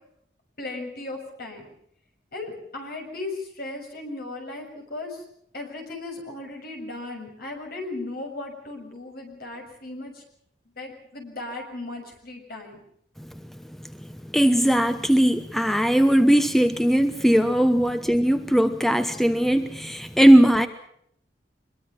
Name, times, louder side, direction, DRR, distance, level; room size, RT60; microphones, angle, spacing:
voice 1, 0.6-1.7 2.3-5.2 5.5-10.2 10.8-12.8 17.8-17.9, left 2 dB, 60° left, 3 dB, 6.9 m, -36 dB
voice 2, 13.8-20.7, right 1 dB, ahead, 9 dB, 0.9 m, -19 dB
24.5 x 22.0 x 5.9 m, 0.70 s
head